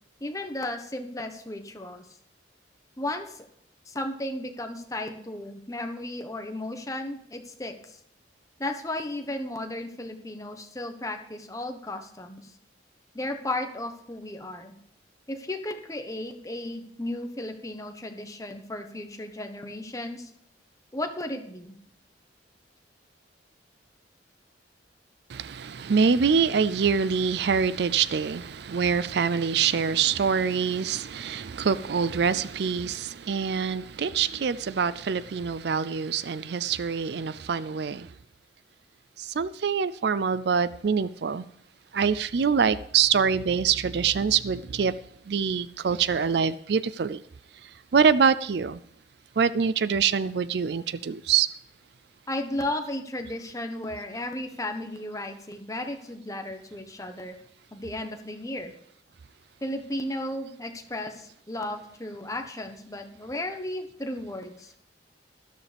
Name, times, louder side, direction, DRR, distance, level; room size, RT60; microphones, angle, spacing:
voice 1, 0.2-2.0 3.0-3.4 3.9-8.0 8.6-12.5 13.1-14.7 15.3-20.3 20.9-21.7 52.3-57.4 57.7-58.7 59.6-64.8, left 1 dB, 15° left, 1.1 m, -34 dB
voice 2, 25.3-38.1 39.2-41.4 41.9-44.9 45.3-47.2 47.9-48.8 49.4-51.5, right 6 dB, 60° right, 0.4 m, -25 dB
13.0 x 12.0 x 3.5 m
head